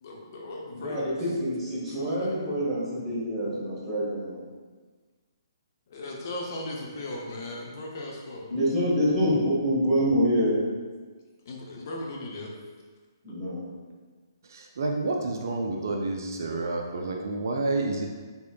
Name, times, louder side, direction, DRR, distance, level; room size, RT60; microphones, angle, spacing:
voice 1, 0.0-1.0 1.9-2.4 5.9-8.5 11.5-12.5, left 1 dB, 45° left, -1 dB, 0.6 m, -37 dB
voice 2, 0.7-4.4 8.5-10.6 13.2-13.6, equal, 10° right, -9 dB, 1.4 m, -26 dB
voice 3, 14.5-18.1, right 2 dB, 55° right, 2 dB, 0.3 m, -29 dB
4.2 x 3.5 x 2.3 m, 1.4 s
figure-of-eight pair, 130°, 2 cm